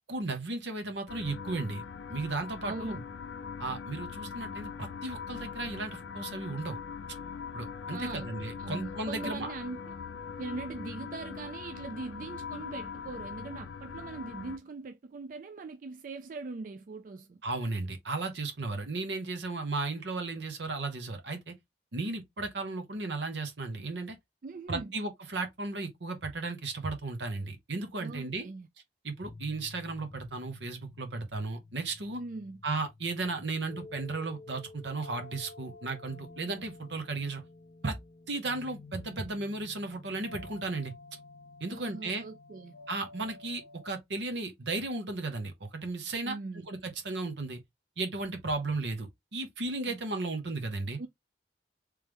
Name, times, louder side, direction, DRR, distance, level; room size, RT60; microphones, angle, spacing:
voice 1, 0.1-3.0 3.6-6.8 7.5-9.5 17.4-21.5 21.9-24.2 24.7-28.5 29.0-32.2 32.6-37.4 37.8-38.0 38.3-40.9 41.6-42.2 42.9-47.6 48.0-51.0, right 3 dB, 80° right, 1.0 m, -35 dB
sound 1, 1.1-14.6, left 6 dB, 85° left, 0.4 m, -41 dB
voice 2, 2.6-3.0 7.9-8.3 8.6-9.9 10.4-17.4 24.4-24.9 28.0-28.7 32.2-32.6 41.7-42.8 46.2-46.7 49.9-50.0 51.0-51.1, right 3 dB, 50° right, 0.4 m, -41 dB
sound 2, 29.2-43.9, left 3 dB, 55° left, 0.7 m, -51 dB
3.3 x 3.2 x 3.4 m
head